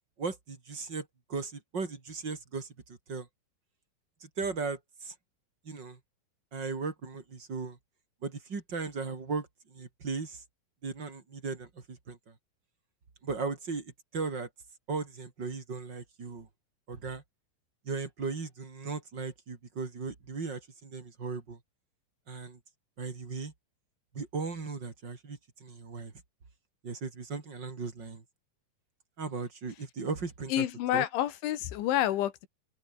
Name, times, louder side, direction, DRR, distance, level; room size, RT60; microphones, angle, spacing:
voice 1, 0.2-3.3 4.2-5.1 5.6-6.0 6.5-7.8 8.2-10.4 10.8-12.3 13.2-14.5 14.9-16.5 16.9-17.2 17.8-21.6 22.3-22.6 23.0-23.5 24.1-26.1 26.8-28.2 29.2-30.6 30.9-31.0, right 4 dB, 25° right, 3.2 m, -37 dB
voice 2, 30.5-32.5, left 13 dB, 75° left, 4.0 m, -29 dB
open air
omnidirectional pair, 5.6 m